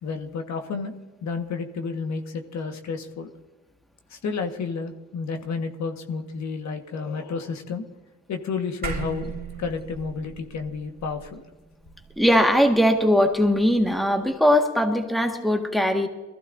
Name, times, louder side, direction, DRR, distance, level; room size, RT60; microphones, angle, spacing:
voice 1, 0.0-0.9 1.2-3.3 4.1-7.8 8.3-9.3 9.6-11.4, left 5 dB, 65° left, 5 dB, 1.5 m, -31 dB
sound 1, 8.8-13.5, right 5 dB, 30° right, 3.4 m, -37 dB
voice 2, 12.2-16.1, equal, ahead, 3 dB, 1.7 m, -20 dB
21.5 x 15.0 x 2.7 m, 1.2 s
cardioid pair, 90°, 30 cm